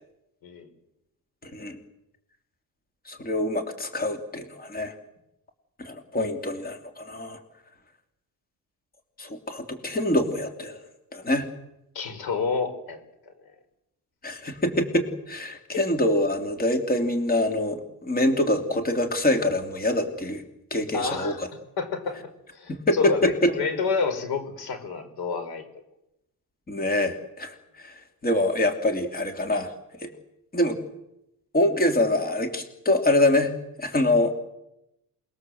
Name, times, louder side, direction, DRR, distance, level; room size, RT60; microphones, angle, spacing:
voice 1, 1.4-1.8 3.1-4.9 5.8-7.4 9.2-10.8 11.1-11.5 14.2-20.4 20.7-21.5 22.7-23.5 26.7-29.7 30.0-30.1 30.5-30.8 31.5-33.5 33.8-34.3, left 1 dB, 25° left, 5 dB, 3.1 m, -25 dB
voice 2, 11.9-13.0 20.9-21.4 21.8-25.6, left 5 dB, 90° left, 8 dB, 5.1 m, -29 dB
28.0 x 21.0 x 7.9 m, 0.87 s
cardioid pair, 135°, 36 cm